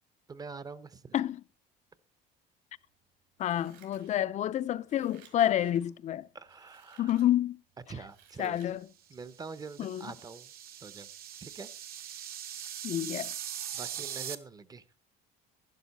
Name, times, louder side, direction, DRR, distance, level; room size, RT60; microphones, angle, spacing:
voice 1, 0.3-1.1 6.3-7.2 7.9-8.6 9.1-10.5 10.8-11.1 11.4-11.7 13.7-14.8, right 4 dB, 20° right, 0.6 m, -44 dB
voice 2, 3.4-6.3 7.0-7.6 8.4-8.9 9.8-10.1 12.8-13.3, left 11 dB, 40° left, 0.4 m, -29 dB
Scissors, 3.4-4.5 4.8-5.9 6.5-7.3 7.7-8.8 9.2-9.3, right 8 dB, 75° right, 4.9 m, -60 dB
sound 1, 9.2-14.4, right 10 dB, 55° right, 1.0 m, -41 dB
11.5 x 11.0 x 4.1 m
cardioid pair, 130°, 19 cm